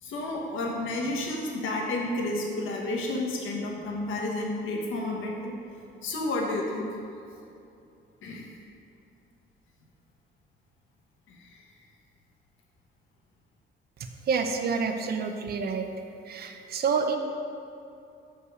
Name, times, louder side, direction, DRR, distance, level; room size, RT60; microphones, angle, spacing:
voice 1, 0.0-7.0 8.2-8.5 11.3-11.9, left 2 dB, 75° left, -1 dB, 1.3 m, -31 dB
voice 2, 14.0-15.9 16.2-17.2, right 5 dB, 50° right, 5 dB, 0.6 m, -28 dB
6.6 x 5.5 x 4.8 m, 2.7 s
cardioid pair, 165°, 21 cm